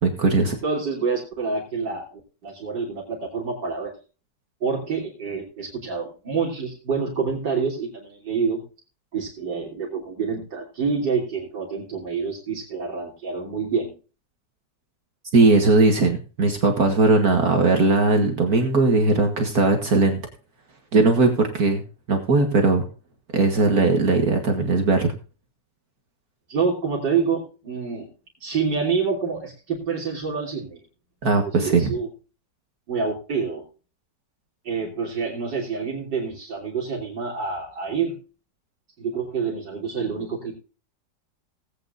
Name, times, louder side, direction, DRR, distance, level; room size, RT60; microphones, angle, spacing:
voice 1, 0.0-0.6 15.3-20.2 20.9-21.8 22.1-22.9 23.3-25.1 31.2-31.9, right 3 dB, 55° right, 4 dB, 2.0 m, -19 dB
voice 2, 0.6-3.9 4.6-8.6 9.1-13.9 26.5-28.1 28.4-30.8 31.5-32.1 32.9-33.6 34.7-38.2 39.0-40.5, right 5 dB, 75° right, -3 dB, 3.8 m, -27 dB
19.0 x 8.8 x 2.6 m, 0.34 s
omnidirectional pair, 1.9 m